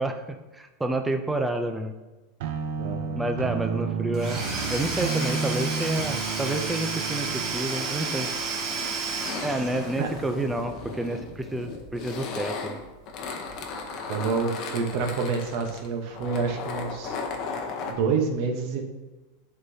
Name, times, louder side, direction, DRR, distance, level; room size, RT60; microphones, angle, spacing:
voice 1, 0.0-1.9 3.2-4.4 4.7-8.3 9.4-12.8, right 1 dB, 5° right, 6 dB, 0.4 m, -29 dB
sound 1, 2.4-7.5, right 5 dB, 65° right, 0.7 m, -31 dB
voice 2, 2.8-3.2 10.0-10.1 14.0-17.2 17.9-18.8, right 5 dB, 45° right, 3 dB, 1.0 m, -28 dB
Domestic sounds home sounds / Tools, 4.1-10.2, right 4 dB, 25° right, 1.8 m, -31 dB
sound 2, 4.3-17.9, left 4 dB, 35° left, 0.8 m, -37 dB
11.0 x 3.9 x 2.8 m, 1.1 s
supercardioid pair, 165°, 0 cm